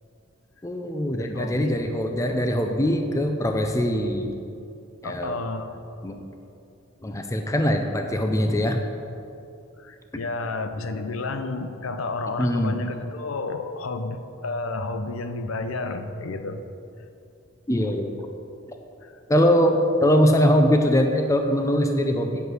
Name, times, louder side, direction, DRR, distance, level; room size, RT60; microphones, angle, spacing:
voice 1, 0.6-4.3 5.0-5.4 6.0-6.2 7.0-8.8 12.4-12.7 17.7-18.2 19.3-22.4, equal, 15° left, 4 dB, 0.5 m, -22 dB
voice 2, 1.1-1.8 5.0-5.8 9.8-16.6 19.0-19.1, left 3 dB, 75° left, 8 dB, 0.6 m, -31 dB
9.4 x 5.4 x 6.3 m, 2.6 s
head